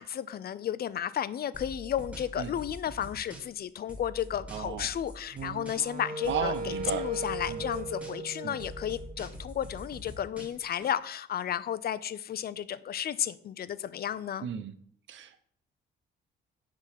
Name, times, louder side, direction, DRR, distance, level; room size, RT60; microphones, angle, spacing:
voice 1, 0.0-14.5, left 10 dB, 50° left, 0.6 m, -33 dB
sound 1, 1.5-3.6 3.9-6.0 6.2-8.3 8.6-10.9, equal, 5° right, 2.3 m, -44 dB
voice 2, 4.5-4.9 6.3-7.1 7.5-7.7 8.4-8.6 14.4-14.7 15.1-15.4, right 8 dB, 70° right, 0.9 m, -34 dB
Wind instrument woodwind instrument, 5.3-9.5, right 1 dB, 50° right, 1.0 m, -38 dB
9.7 x 3.8 x 6.5 m
cardioid pair, 90°, 20 cm